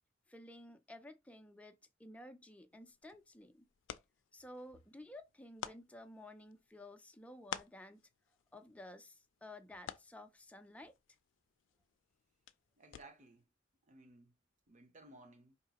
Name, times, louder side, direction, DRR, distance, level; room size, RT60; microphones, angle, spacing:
voice 1, 0.3-3.7 4.3-8.0 8.5-10.9, left 1 dB, 5° left, 0.4 m, -54 dB
sound 1, 2.7-13.4, left 8 dB, 90° left, 0.4 m, -53 dB
voice 2, 12.8-13.5 13.8-14.3 14.7-15.6, right 2 dB, 40° right, 0.9 m, -58 dB
4.6 x 2.8 x 2.9 m
head